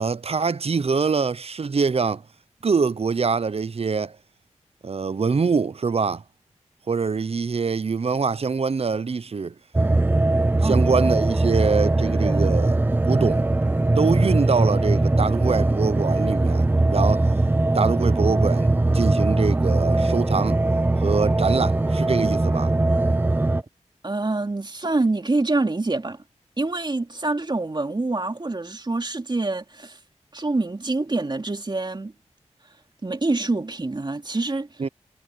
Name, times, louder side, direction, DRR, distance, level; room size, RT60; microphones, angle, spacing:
voice 1, 0.0-2.2 2.6-4.2 4.8-6.2 6.9-9.5 10.6-12.7 13.1-13.5 14.0-17.2 17.7-18.7 18.9-20.6 21.0-22.7 34.8-34.9, right 5 dB, 55° right, 0.8 m, -24 dB
sound 1, 9.7-23.6, right 2 dB, 15° right, 0.4 m, -20 dB
voice 2, 24.0-26.2 26.6-30.0 30.3-32.1 33.0-34.8, right 2 dB, 40° right, 3.1 m, -26 dB
cardioid pair, 50°, 12 cm